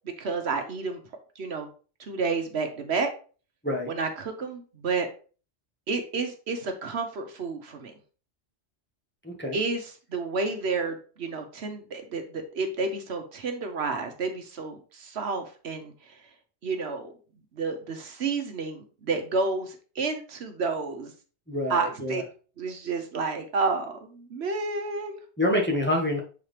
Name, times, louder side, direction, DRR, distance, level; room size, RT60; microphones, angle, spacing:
voice 1, 0.2-1.0 1.4-1.7 2.0-3.1 3.9-5.1 5.9-7.9 9.5-15.9 16.6-17.1 17.6-21.1 21.7-22.2 22.6-25.2, right 4 dB, 65° right, 6 dB, 1.1 m, -30 dB
voice 2, 9.2-9.6 21.5-22.2 25.4-26.2, left 1 dB, 10° left, -1 dB, 1.1 m, -26 dB
7.1 x 4.0 x 3.3 m, 0.37 s
omnidirectional pair, 1.2 m